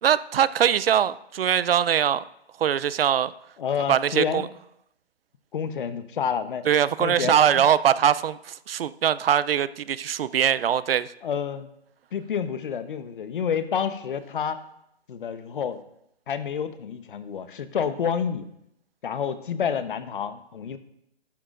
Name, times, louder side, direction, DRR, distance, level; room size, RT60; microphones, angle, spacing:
voice 1, 0.0-2.2 2.6-3.3 3.9-4.5 6.7-11.1, right 9 dB, 60° right, 17 dB, 0.5 m, -22 dB
voice 2, 3.6-4.5 5.5-6.7 7.0-7.6 11.2-11.7 12.1-14.6 15.1-15.8 16.3-18.5 19.0-20.8, left 7 dB, 50° left, 11 dB, 0.9 m, -29 dB
12.5 x 11.5 x 2.5 m, 0.78 s
hypercardioid pair, 160°, 32 cm